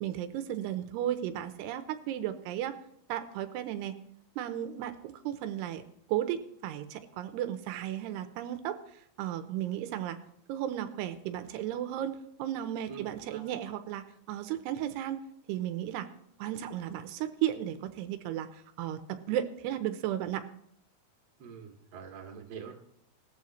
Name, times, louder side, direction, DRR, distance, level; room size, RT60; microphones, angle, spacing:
voice 1, 0.0-2.7 3.1-4.0 4.4-5.8 6.1-10.2 10.5-15.2 15.5-16.1 16.4-20.5, right 11 dB, 85° right, 9 dB, 2.8 m, -34 dB
voice 2, 12.9-13.4 21.4-22.7, right 7 dB, 40° right, 1 dB, 2.0 m, -45 dB
19.0 x 13.5 x 3.1 m, 0.71 s
omnidirectional pair, 4.7 m